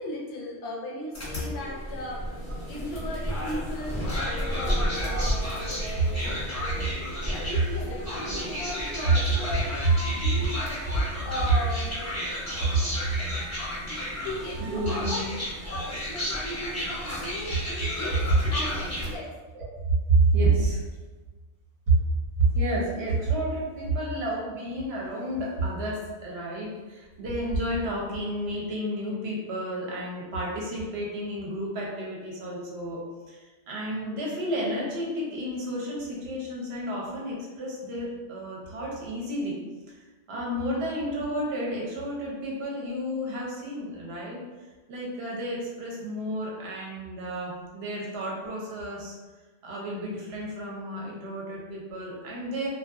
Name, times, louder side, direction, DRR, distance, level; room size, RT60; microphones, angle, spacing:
voice 1, 0.0-2.2 2.7-5.9 7.3-9.7 10.0-10.8 11.2-11.9 13.2-14.6 14.9-15.4 15.7-17.6 18.0-18.3 18.5-19.3, left 1 dB, 65° left, -3 dB, 0.8 m, -37 dB
sound 1, 1.1-19.2, equal, 20° left, 0.6 m, -32 dB
voice 2, 5.0-6.2 7.7-8.1 9.1-9.2 10.8-11.1 11.9-12.1 14.6-15.2 17.7-17.9 18.4-18.6 19.5-19.7 20.1-20.8 21.9-22.0 22.5-39.6 39.9-40.0 40.3-44.4 44.9-49.1 49.6-52.7, right 2 dB, 65° right, -4 dB, 0.8 m, -30 dB
2.6 x 2.2 x 2.3 m, 1.3 s
omnidirectional pair, 1.3 m